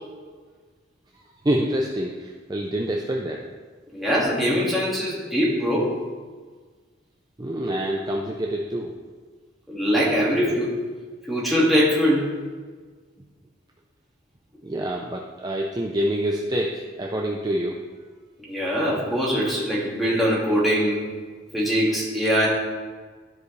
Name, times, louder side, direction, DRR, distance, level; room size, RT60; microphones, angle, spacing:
voice 1, 1.4-3.4 7.4-8.9 14.6-17.8, right 1 dB, 20° right, 0 dB, 0.5 m, -26 dB
voice 2, 3.9-5.9 9.7-10.8 11.2-12.3 18.4-21.0 21.5-22.5, equal, ahead, -7 dB, 1.9 m, -22 dB
13.0 x 4.8 x 3.2 m, 1.5 s
head